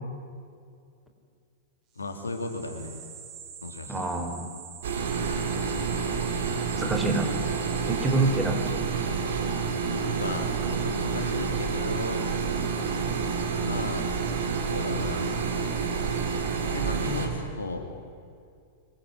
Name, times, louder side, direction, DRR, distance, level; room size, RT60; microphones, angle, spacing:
voice 1, 1.9-3.0 3.6-4.1 9.9-12.3 13.6-14.2 14.7-15.3 16.6-17.9, left 3 dB, 80° left, 5 dB, 3.5 m, -35 dB
sound 1, 2.0-8.5, right 7 dB, 35° right, 5.0 m, -46 dB
voice 2, 3.9-4.5 6.7-7.3 7.8-8.6, right 2 dB, 10° right, 4 dB, 4.5 m, -26 dB
sound 2, 4.8-17.3, right 5 dB, 65° right, 4.6 m, -29 dB
25.5 x 23.5 x 9.9 m, 2.3 s
figure-of-eight pair, 95°, 0 cm